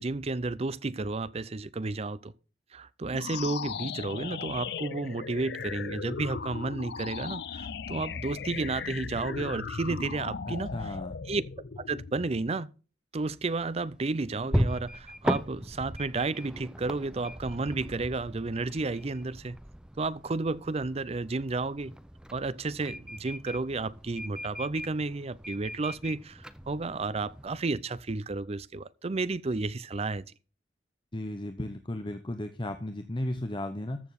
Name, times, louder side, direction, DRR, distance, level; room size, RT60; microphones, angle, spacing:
voice 1, 0.0-2.3 2.7-10.9 11.3-11.4 11.8-12.7 13.1-19.6 20.0-21.9 22.3-30.3, right 3 dB, 35° right, 0.6 m, -32 dB
sound 1, 3.1-12.6, left 5 dB, 65° left, 0.6 m, -37 dB
voice 2, 10.5-11.2 31.1-34.0, left 1 dB, 30° left, 0.9 m, -35 dB
sound 2, 13.2-27.6, equal, 5° right, 0.8 m, -38 dB
14.0 x 7.1 x 4.1 m
head